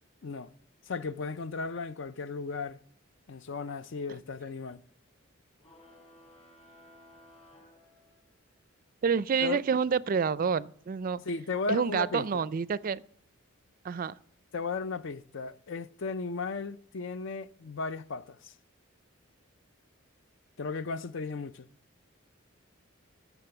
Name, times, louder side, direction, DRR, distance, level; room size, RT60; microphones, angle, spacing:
voice 1, 0.9-2.8 3.3-4.8 9.4-9.6 11.2-12.4 14.5-18.5 20.6-21.7, left 4 dB, 60° left, 0.5 m, -35 dB
sound 1, 5.6-8.6, left 1 dB, 30° left, 2.6 m, -57 dB
voice 2, 9.0-11.2 11.7-13.0 13.8-14.1, right 6 dB, 45° right, 0.4 m, -28 dB
14.5 x 6.0 x 7.0 m
head